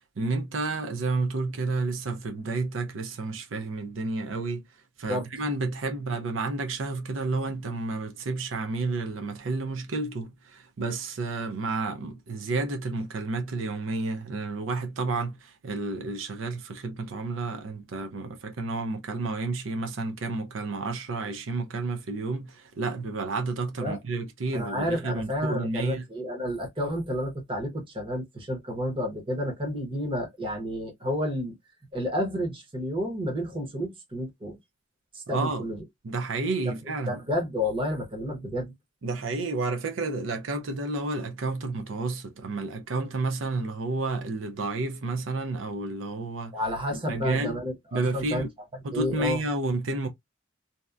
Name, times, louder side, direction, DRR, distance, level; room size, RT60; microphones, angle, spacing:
voice 1, 0.2-4.6 5.0-26.0 35.3-35.7 36.0-37.2 39.0-46.5 46.9-47.6 47.9-48.5 48.8-50.1, right 3 dB, 90° right, 0.5 m, -31 dB
voice 2, 24.5-31.5 31.9-34.6 35.1-35.8 36.7-36.8 37.1-38.7 46.5-48.5 48.9-49.4, equal, 25° right, 0.9 m, -30 dB
2.7 x 2.2 x 2.3 m
head